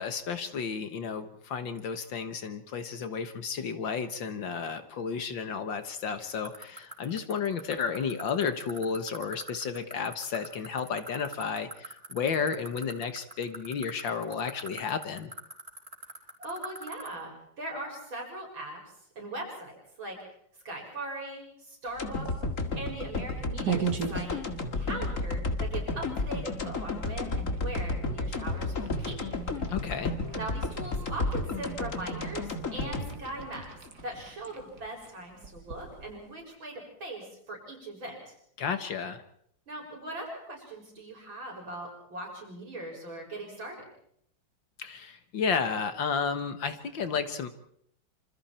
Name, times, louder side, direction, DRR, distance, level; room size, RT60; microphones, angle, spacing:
voice 1, 0.0-15.3 29.7-30.1 38.6-39.2 44.8-47.5, left 6 dB, 75° left, 9 dB, 2.1 m, -32 dB
sound 1, 6.4-17.1, right 2 dB, 30° right, 4.6 m, -39 dB
voice 2, 16.4-18.8 19.2-20.2 20.7-22.3 22.7-24.4 24.8-25.8 26.2-29.2 30.3-33.6 34.0-38.3 39.7-43.8, right 2 dB, 85° right, 0 dB, 7.3 m, -40 dB
sound 2, 21.9-36.4, right 6 dB, 55° right, 2.8 m, -41 dB
sound 3, 22.0-34.2 34.6-34.7, left 2 dB, 40° left, 2.3 m, -33 dB
26.5 x 26.0 x 4.4 m, 0.69 s
omnidirectional pair, 2.1 m